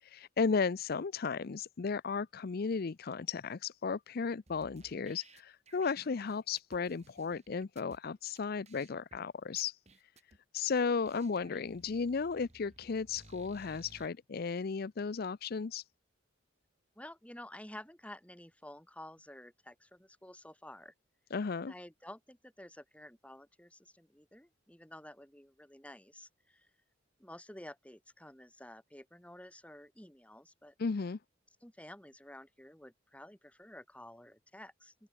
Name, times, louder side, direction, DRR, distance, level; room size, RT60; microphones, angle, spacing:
voice 1, 0.0-9.8 10.5-15.8 21.3-21.7 30.8-31.2, left 5 dB, 50° left, 0.5 m, -34 dB
sound 1, 4.5-8.0 8.4-8.5 8.7-9.2 9.6-10.4 10.8-10.9 11.1-14.1, right 2 dB, 35° right, 4.0 m, -59 dB
voice 2, 16.9-20.9 21.6-26.7 27.2-30.7 31.6-35.1, left 1 dB, 5° left, 2.9 m, -51 dB
open air
head